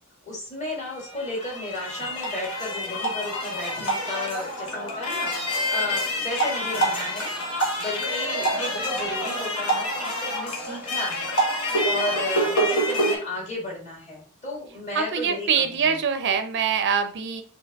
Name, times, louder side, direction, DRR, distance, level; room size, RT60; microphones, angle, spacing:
voice 1, 0.3-7.3 7.8-11.4 11.8-16.0, left 1 dB, 35° left, -2 dB, 1.6 m, -33 dB
sound 1, 0.8-13.2, equal, 80° left, 1.3 m, -27 dB
voice 2, 14.9-17.4, right 6 dB, 55° right, 8 dB, 0.5 m, -24 dB
4.4 x 2.9 x 3.5 m, 0.43 s
head